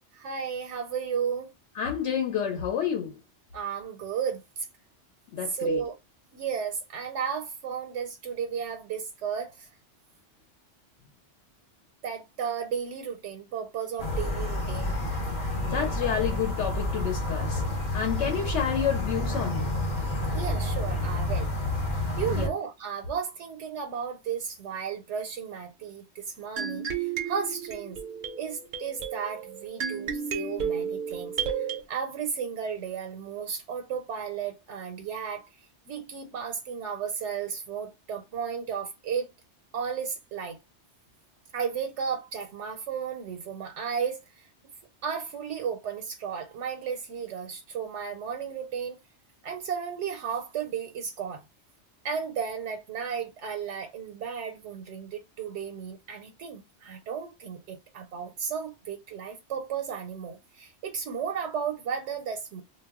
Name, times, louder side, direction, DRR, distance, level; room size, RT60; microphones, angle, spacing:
voice 1, 0.1-1.5 3.5-4.7 5.4-6.0 6.3-9.7 12.0-15.0 20.3-21.5 22.2-28.0 28.4-35.5 35.9-39.3 39.7-40.6 41.5-44.5 45.0-49.0 49.4-51.4 52.0-62.6, right 7 dB, 85° right, 0.9 m, -34 dB
voice 2, 1.8-3.1 5.3-5.8 15.6-17.6 17.9-19.7 22.3-22.5, left 8 dB, 80° left, 0.9 m, -29 dB
sound 1, 14.0-22.5, left 1 dB, 50° left, 0.7 m, -29 dB
sound 2, 26.6-31.8, right 7 dB, 60° right, 0.5 m, -32 dB
2.2 x 2.0 x 3.5 m
omnidirectional pair, 1.2 m